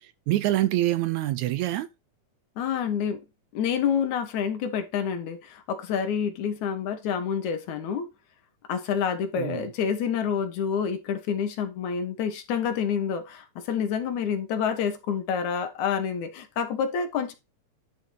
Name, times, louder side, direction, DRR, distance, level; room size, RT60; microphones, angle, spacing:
voice 1, 0.0-1.9 9.4-9.7, right 15 dB, 75° right, 1.9 m, -26 dB
voice 2, 2.6-3.2 3.5-8.1 8.7-17.3, left 7 dB, 70° left, 2.6 m, -28 dB
10.5 x 4.4 x 3.8 m
omnidirectional pair, 3.6 m